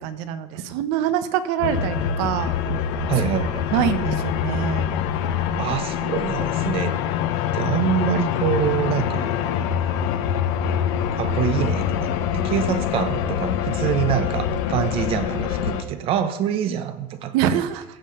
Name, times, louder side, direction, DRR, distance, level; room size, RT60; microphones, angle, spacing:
voice 1, 0.0-2.5 3.2-4.9 17.3-17.8, right 9 dB, 65° right, 12 dB, 1.1 m, -25 dB
sound 1, 1.6-15.8, left 8 dB, 70° left, 1.0 m, -24 dB
voice 2, 3.1-3.7 5.6-7.0 7.5-9.3 11.1-17.6, right 9 dB, 40° right, 11 dB, 0.8 m, -25 dB
16.0 x 5.7 x 5.6 m, 1.1 s
cardioid pair, 165°, 15 cm